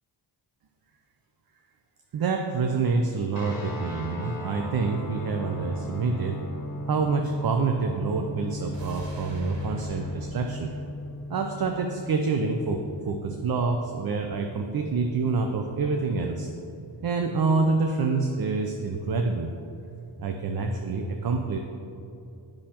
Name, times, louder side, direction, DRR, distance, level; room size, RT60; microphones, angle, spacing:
voice 1, 2.1-6.4 6.9-10.7 11.3-16.5 17.0-19.5 20.2-21.6, right 4 dB, 50° right, 4 dB, 0.5 m, -27 dB
sound 1, 3.3-13.7, left 1 dB, 50° left, 1.3 m, -37 dB
sound 2, 8.7-11.9 12.2-12.3, equal, 70° right, 1.3 m, -46 dB
8.4 x 6.3 x 2.9 m, 2.7 s
cardioid pair, 75°, 46 cm